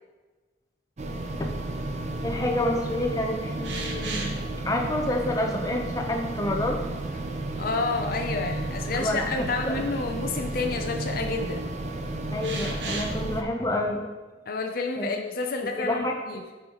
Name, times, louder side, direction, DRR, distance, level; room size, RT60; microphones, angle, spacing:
sound 1, 1.0-13.4, right 2 dB, 40° right, 0.5 m, -32 dB
voice 1, 2.2-4.3 4.6-6.8 9.0-9.9 12.3-14.1 15.0-15.1 15.8-16.1, left 1 dB, 20° left, 1 dB, 0.9 m, -28 dB
sound 2, 3.6-4.5 6.0-6.1 7.0-7.8 8.2-8.3 10.2-10.3 12.4-13.1, right 3 dB, 85° right, 1.0 m, -35 dB
voice 2, 7.6-11.7 14.5-16.4, left 3 dB, 55° left, 3 dB, 0.6 m, -29 dB
8.4 x 5.5 x 3.1 m, 1.3 s
head